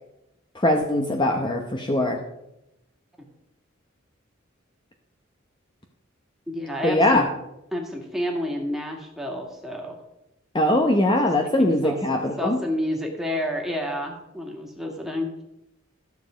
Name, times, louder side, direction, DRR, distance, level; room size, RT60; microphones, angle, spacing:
voice 1, 0.5-2.2 6.8-7.3 10.5-12.6, left 1 dB, 25° left, 3 dB, 0.8 m, -21 dB
voice 2, 6.5-7.2 7.7-10.0 11.6-12.0 12.4-15.3, equal, ahead, 0 dB, 1.9 m, -29 dB
13.5 x 7.1 x 5.0 m, 0.89 s
head